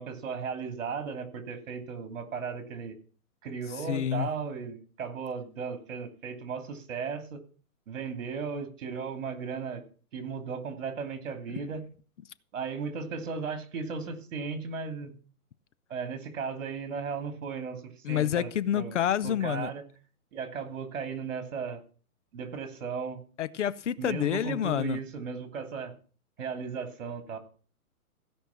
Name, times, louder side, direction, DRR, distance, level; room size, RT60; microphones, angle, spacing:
voice 1, 0.0-3.0 3.4-7.4 7.9-9.8 10.1-11.8 12.5-15.1 15.9-19.8 20.3-21.8 22.3-23.2 24.0-25.9 26.4-27.4, right 5 dB, 60° right, 2.9 m, -36 dB
voice 2, 3.9-4.3 18.0-19.7 23.4-25.0, left 10 dB, 55° left, 0.7 m, -28 dB
16.0 x 5.5 x 7.2 m
hypercardioid pair, 170°, 44 cm